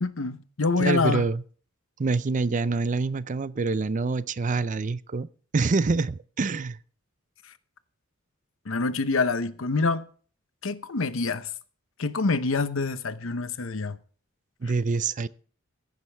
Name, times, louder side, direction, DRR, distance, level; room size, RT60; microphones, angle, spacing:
voice 1, 0.0-1.3 8.7-10.1 10.6-11.5 12.0-14.0, left 3 dB, 75° left, 0.9 m, -26 dB
voice 2, 0.8-1.4 2.0-5.3 5.5-6.8 14.6-15.3, right 4 dB, 40° right, 0.5 m, -26 dB
15.0 x 10.5 x 3.4 m
head